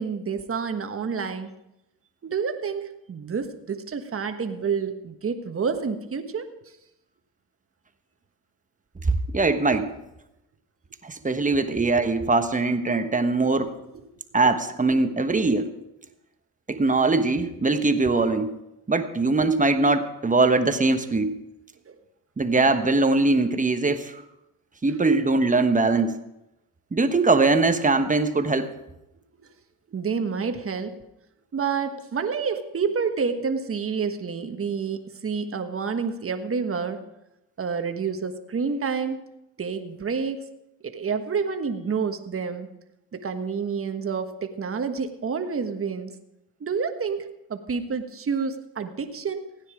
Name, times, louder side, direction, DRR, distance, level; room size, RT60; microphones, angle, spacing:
voice 1, 0.0-1.5 2.2-6.5 13.9-14.0 21.9-22.0 29.9-31.0 31.5-37.0 37.6-39.2 39.6-40.5 40.8-42.7 43.1-46.1 46.6-49.4, right 5 dB, 35° right, 7 dB, 1.4 m, -28 dB
voice 2, 9.1-9.9 11.0-13.8 14.3-15.7 16.7-18.6 18.9-21.4 22.4-24.2 24.8-26.2 26.9-28.7, right 3 dB, 20° right, 8 dB, 1.1 m, -21 dB
16.0 x 9.8 x 4.9 m, 0.88 s
cardioid pair, 90°, 38 cm